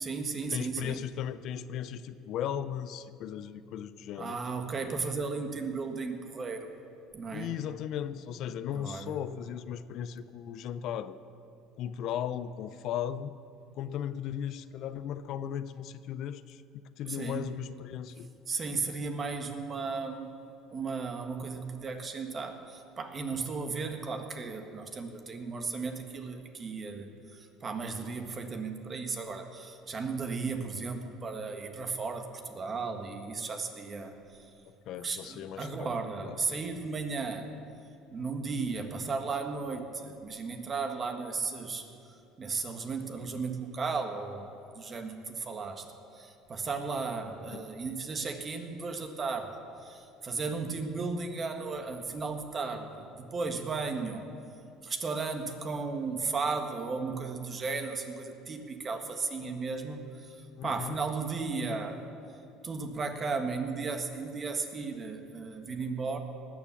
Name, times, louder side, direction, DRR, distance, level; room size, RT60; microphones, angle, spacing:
voice 1, 0.0-1.0 4.2-6.7 7.1-7.6 8.7-9.2 17.1-17.5 18.5-20.4 20.7-34.5 35.0-37.5 38.1-54.3 54.8-62.0 62.6-66.2, right 4 dB, 35° right, 6 dB, 1.7 m, -35 dB
voice 2, 0.5-4.4 7.3-11.2 11.7-13.3 13.8-16.6 17.0-18.3 34.9-35.9 36.2-36.4 47.5-47.6 60.6-61.0, left 9 dB, 60° left, 13 dB, 0.6 m, -36 dB
19.0 x 7.3 x 7.2 m, 2.6 s
supercardioid pair, 80°, 0 cm